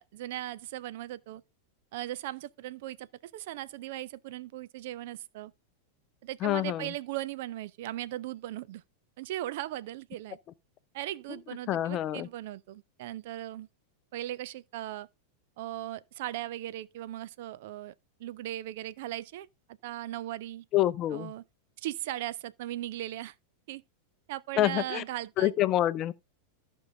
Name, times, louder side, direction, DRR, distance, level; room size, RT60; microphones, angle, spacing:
voice 1, 0.0-1.4 1.9-5.5 6.2-8.8 9.2-10.4 10.9-13.7 14.1-15.1 15.6-17.9 18.2-19.5 19.8-20.6 21.1-21.4 21.8-23.4 23.7-23.8 24.3-25.5, right 14 dB, 50° right, 0.4 m, -38 dB
voice 2, 6.4-6.9 11.7-12.3 20.7-21.3 24.6-25.0 25.4-26.1, left 14 dB, 35° left, 0.5 m, -27 dB
14.0 x 5.4 x 3.3 m
figure-of-eight pair, 90°, 0 cm